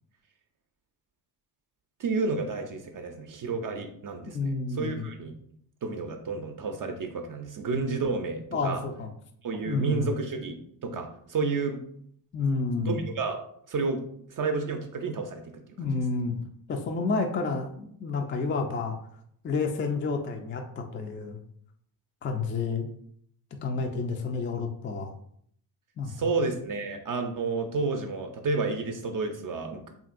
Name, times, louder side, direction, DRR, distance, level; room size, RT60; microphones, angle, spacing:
voice 1, 2.0-5.3 5.8-8.8 9.4-11.8 12.8-13.4 13.7-14.0 14.3-15.4 15.8-15.9 26.1-29.9, right 4 dB, 40° right, 4 dB, 0.5 m, -31 dB
voice 2, 4.3-5.0 7.7-7.8 8.5-9.1 9.7-10.1 12.3-13.1 15.8-16.4 16.7-19.0 19.4-21.4 22.2-22.9 23.6-25.1 26.0-26.3, left 4 dB, 25° left, 4 dB, 0.3 m, -30 dB
2.8 x 2.5 x 2.5 m, 0.66 s
supercardioid pair, 50°, 50 cm